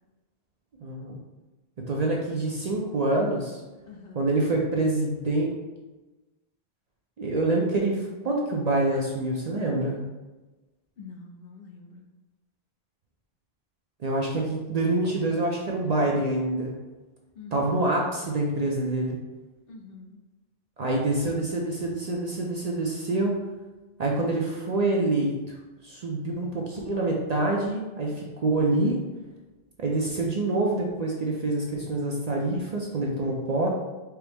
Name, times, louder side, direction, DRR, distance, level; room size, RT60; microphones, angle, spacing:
voice 1, 0.8-1.2 1.9-3.6 4.1-5.5 7.2-10.0 14.0-16.7 17.5-19.2 20.8-23.4 24.0-25.6 25.8-29.0 29.8-33.7, right 2 dB, 50° right, -1 dB, 0.5 m, -26 dB
voice 2, 3.8-4.2 11.0-12.0 17.3-17.8 19.7-20.2, left 4 dB, 65° left, 2 dB, 0.8 m, -45 dB
4.5 x 2.0 x 3.3 m, 1.1 s
omnidirectional pair, 1.1 m